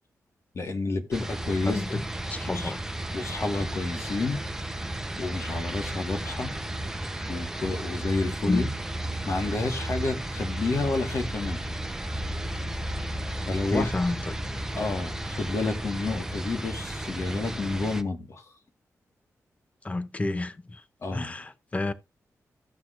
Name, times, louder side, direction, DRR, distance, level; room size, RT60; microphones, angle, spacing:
voice 1, 0.5-2.0 2.5-2.7 3.1-4.4 5.2-6.5 7.3-8.7 9.2-11.6 13.5-13.9 14.7-18.4 21.0-21.3, left 3 dB, 55° left, 1.7 m, -30 dB
sound 1, 1.1-18.0, right 1 dB, 10° right, 0.8 m, -33 dB
voice 2, 1.6-2.0 2.3-2.8 8.5-8.7 13.7-14.4 19.8-20.8 21.1-21.9, left 2 dB, 25° left, 0.7 m, -29 dB
15.5 x 5.9 x 2.5 m
wide cardioid pair, 105°, 6 cm